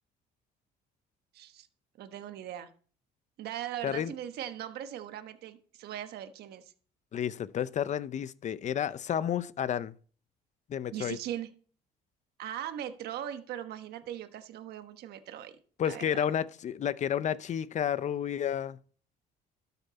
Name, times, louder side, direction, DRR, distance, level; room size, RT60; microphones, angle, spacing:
voice 1, 1.3-1.7 2.0-2.7 3.4-6.7 10.9-11.5 12.4-15.6 15.8-16.2, right 11 dB, 70° right, 1.2 m, -39 dB
voice 2, 7.1-10.0 10.7-11.2 15.8-18.8, left 9 dB, 45° left, 0.7 m, -31 dB
12.5 x 8.0 x 4.2 m
cardioid pair, 110°, 17 cm